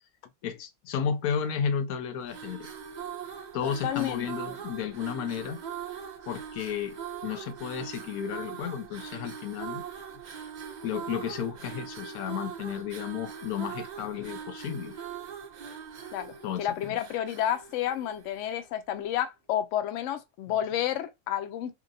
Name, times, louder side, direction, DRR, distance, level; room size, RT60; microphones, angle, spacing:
voice 1, 0.4-2.7 3.5-5.6 6.3-7.0 7.2-9.8 10.8-14.9 16.4-17.0, left 7 dB, 85° left, 1.1 m, -33 dB
sound 1, 2.2-18.7, right 8 dB, 75° right, 0.4 m, -41 dB
voice 2, 3.6-4.5 16.1-21.7, left 11 dB, 65° left, 0.8 m, -31 dB
2.9 x 2.6 x 2.6 m
omnidirectional pair, 1.5 m